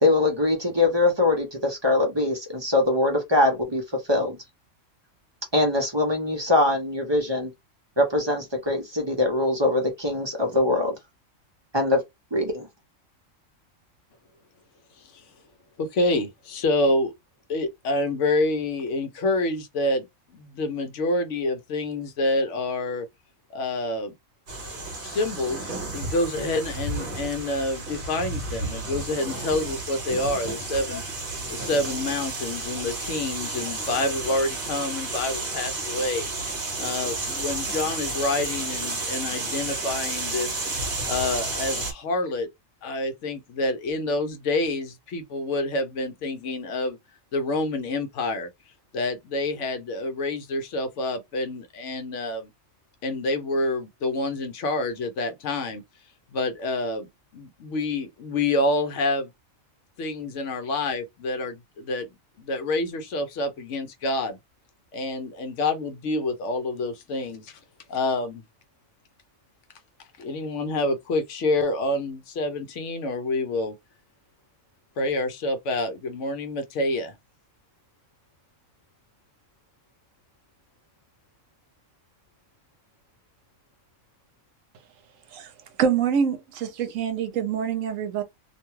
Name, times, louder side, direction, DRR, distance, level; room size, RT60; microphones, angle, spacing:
voice 1, 0.0-4.4 5.5-7.5 8.0-10.9 11.7-12.0 12.3-12.7, left 2 dB, 30° right, 0.6 m, -22 dB
voice 2, 15.8-17.1 17.5-23.1 23.5-24.2 25.0-31.0 31.5-36.2 36.8-40.6 41.0-42.5 42.8-47.0 47.3-48.5 48.9-52.5 53.0-55.8 56.3-57.1 57.3-59.3 60.0-62.1 62.4-64.4 64.9-67.6 67.9-68.4 70.2-73.7 75.0-77.1, left 2 dB, 70° left, 0.9 m, -27 dB
sound 1, 24.5-41.9, right 2 dB, 45° right, 1.1 m, -32 dB
voice 3, 85.8-88.2, right 7 dB, 80° right, 1.0 m, -25 dB
2.5 x 2.2 x 3.0 m
omnidirectional pair, 1.4 m